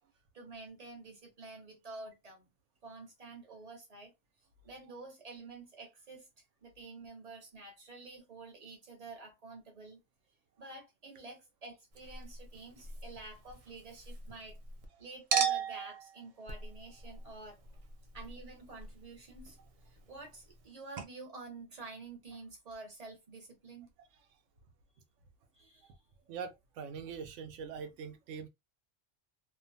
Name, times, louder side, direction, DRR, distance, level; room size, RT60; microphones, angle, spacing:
voice 1, 0.3-2.5 2.8-4.1 4.6-6.3 6.6-10.0 10.6-14.6 15.0-17.6 18.1-19.6 19.9-23.9 25.5-25.9, right 3 dB, 35° right, 0.9 m, -49 dB
Chink clink, 11.9-14.9 15.3-20.7 21.0-21.1, right 7 dB, 65° right, 0.3 m, -39 dB
voice 2, 26.3-28.5, right 6 dB, 85° right, 0.9 m, -43 dB
2.6 x 2.1 x 2.6 m
omnidirectional pair, 1.2 m